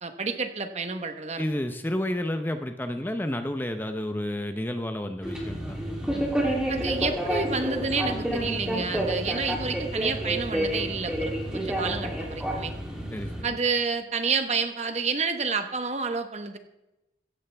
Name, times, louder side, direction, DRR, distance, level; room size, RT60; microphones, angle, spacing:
voice 1, 0.0-1.4 6.7-12.7 13.4-16.6, right 4 dB, 35° right, 7 dB, 1.1 m, -29 dB
voice 2, 1.4-5.8 6.0-6.2 13.1-13.6, left 1 dB, 10° left, 7 dB, 0.6 m, -31 dB
sound 1, 5.2-13.4, right 1 dB, 5° right, 2.9 m, -29 dB
16.5 x 13.5 x 3.4 m, 0.94 s
head